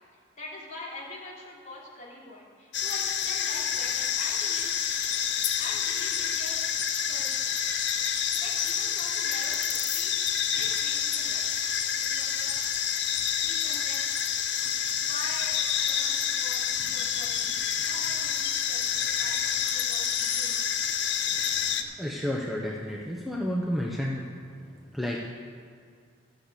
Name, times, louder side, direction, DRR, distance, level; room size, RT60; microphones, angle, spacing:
voice 1, 0.4-5.0 5.6-6.6 7.0-7.5 8.4-11.5 11.8-12.6 13.4-14.0 15.0-15.6 15.8-20.7, left 2 dB, 40° left, -5 dB, 3.3 m, -44 dB
sound 1, 2.7-21.8, left 8 dB, 60° left, 0.8 m, -28 dB
voice 2, 21.2-25.3, equal, ahead, -2 dB, 0.8 m, -32 dB
13.5 x 6.6 x 8.2 m, 2.2 s
head